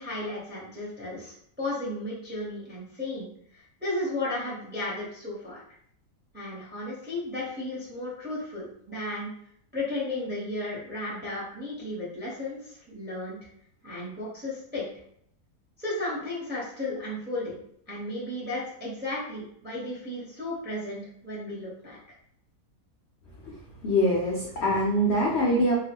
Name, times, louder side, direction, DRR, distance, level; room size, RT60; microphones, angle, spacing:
voice 1, 0.0-5.6 6.3-9.3 9.7-13.4 13.8-14.9 15.8-17.6 17.9-22.0, left 2 dB, 10° right, -6 dB, 0.5 m, -34 dB
voice 2, 23.8-25.7, equal, 70° left, -3 dB, 0.6 m, -23 dB
2.9 x 2.3 x 2.9 m, 0.69 s
omnidirectional pair, 1.7 m